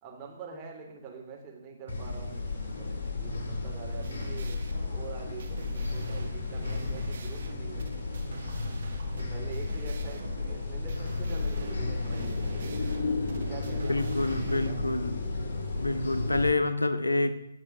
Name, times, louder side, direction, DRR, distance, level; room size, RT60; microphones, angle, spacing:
voice 1, 0.0-7.9 9.2-12.7 13.5-14.9, right 5 dB, 20° right, -1 dB, 3.1 m, -45 dB
sound 1, 1.9-16.5, left 3 dB, 45° left, 2.7 m, -33 dB
sound 2, 3.8-14.7, right 5 dB, 50° right, 1.6 m, -48 dB
voice 2, 13.9-15.1 15.8-17.3, left 2 dB, 75° left, 10 dB, 1.0 m, -27 dB
18.5 x 6.4 x 6.1 m, 0.82 s
figure-of-eight pair, 130°, 0 cm